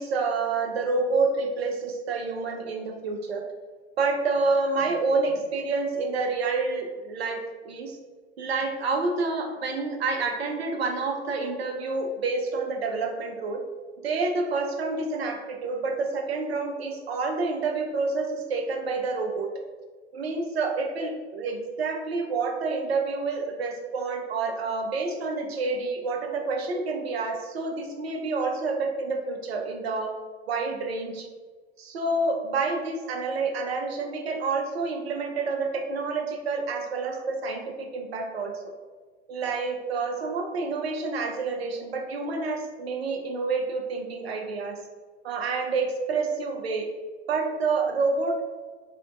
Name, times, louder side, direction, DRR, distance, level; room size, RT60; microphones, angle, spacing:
voice 1, 0.0-3.4 4.0-8.0 8.4-13.6 14.0-19.5 20.1-30.1 30.5-31.3 31.8-38.5 39.3-44.8 45.2-46.9 47.3-48.5, right 3 dB, 65° right, 3 dB, 0.8 m, -28 dB
3.4 x 2.8 x 3.8 m, 1.4 s
figure-of-eight pair, 90°, 33 cm